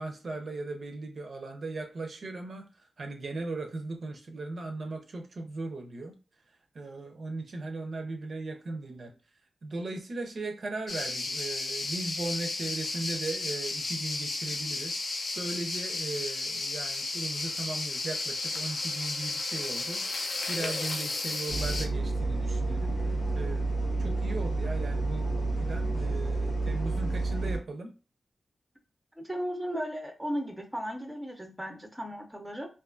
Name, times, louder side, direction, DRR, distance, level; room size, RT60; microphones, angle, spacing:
voice 1, 0.0-6.2 6.7-9.1 9.6-15.0 15.3-27.9, right 2 dB, 55° right, 4 dB, 0.5 m, -38 dB
sound 1, 10.9-21.9, left 3 dB, 55° left, 0.5 m, -33 dB
sound 2, 21.5-27.6, right 2 dB, 80° left, 1.0 m, -30 dB
voice 2, 29.2-32.7, equal, 5° right, 3 dB, 0.5 m, -35 dB
2.4 x 2.3 x 2.4 m, 0.34 s
wide cardioid pair, 120°, 0 cm